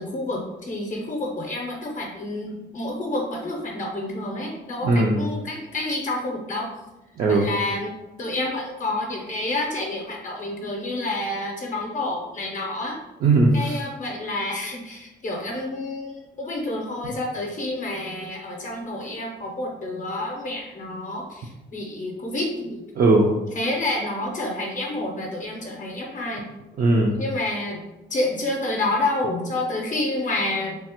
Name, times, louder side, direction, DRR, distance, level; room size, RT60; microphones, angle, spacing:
voice 1, 0.0-6.7 7.3-13.0 13.5-22.8 23.5-26.4 27.2-27.8 28.1-30.8, left 2 dB, 40° left, -1 dB, 0.6 m, -29 dB
voice 2, 4.8-5.2 7.2-7.5 13.2-13.8 23.0-23.3 26.8-27.2, right 2 dB, 45° right, -2 dB, 0.4 m, -18 dB
3.2 x 2.0 x 2.8 m, 0.99 s
cardioid pair, 90°, 20 cm